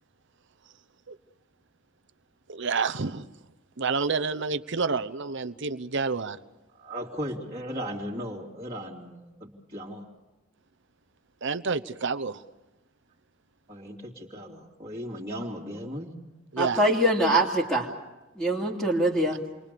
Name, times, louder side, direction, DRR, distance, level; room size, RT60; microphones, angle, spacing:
voice 1, 2.5-3.3 3.8-6.4 11.4-12.4 16.5-16.8, right 4 dB, 60° right, 10 dB, 1.0 m, -29 dB
voice 2, 6.8-10.0 13.7-16.1, equal, 25° right, -7 dB, 3.0 m, -37 dB
voice 3, 16.6-17.9 18.4-19.4, right 1 dB, 5° left, -5 dB, 2.8 m, -23 dB
28.5 x 23.0 x 6.9 m, 1.1 s
head